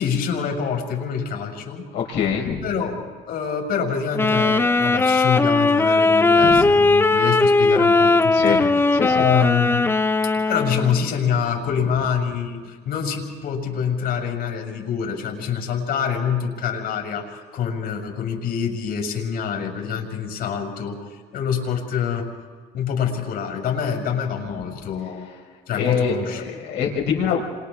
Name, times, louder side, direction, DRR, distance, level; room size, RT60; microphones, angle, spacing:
voice 1, 0.0-1.9 2.6-3.0 3.3-9.9 10.4-22.3 22.7-25.3 25.7-26.4, left 7 dB, 70° left, 1 dB, 6.8 m, -26 dB
voice 2, 1.9-2.6 6.4-6.8 8.3-8.6 8.9-9.2 25.7-27.4, left 7 dB, 85° left, 0 dB, 4.7 m, -24 dB
Wind instrument woodwind instrument, 4.1-11.1, left 3 dB, 15° left, 0.5 m, -18 dB
29.5 x 26.5 x 3.7 m, 1.5 s
cardioid pair, 110°, 17 cm